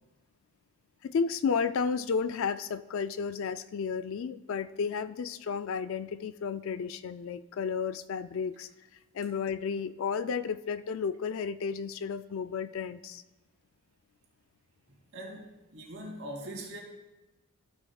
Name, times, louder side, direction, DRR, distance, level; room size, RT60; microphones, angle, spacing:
voice 1, 1.0-8.7 9.1-13.2, left 6 dB, 60° left, 0.3 m, -32 dB
voice 2, 15.1-16.8, right 1 dB, 60° right, 2.5 m, -41 dB
14.5 x 7.1 x 2.3 m
head